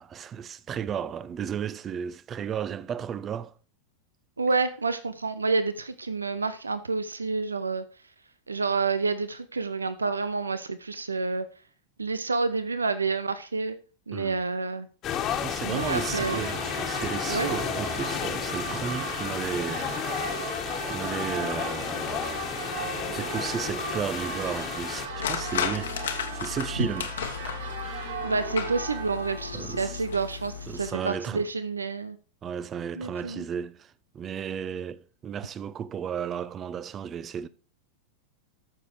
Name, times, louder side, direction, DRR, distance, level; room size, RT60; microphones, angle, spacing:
voice 1, 0.0-3.6 14.1-14.4 15.3-20.4 20.8-22.6 23.1-28.2 29.5-30.0 30.7-31.5 32.4-37.5, right 8 dB, 25° right, 0.7 m, -34 dB
voice 2, 4.4-7.8 8.5-11.4 12.0-13.8 14.1-14.9 15.6-16.4 17.3-17.5 26.8-26.9 28.2-32.2 33.0-33.4, right 4 dB, 75° right, 0.6 m, -29 dB
sound 1, 15.0-25.1, left 9 dB, 35° left, 1.6 m, -32 dB
Church bell, 15.7-31.4, right 4 dB, 60° right, 1.8 m, -37 dB
sound 2, 25.1-30.9, left 8 dB, 65° left, 1.4 m, -34 dB
13.5 x 6.8 x 4.7 m
figure-of-eight pair, 90°, 0 cm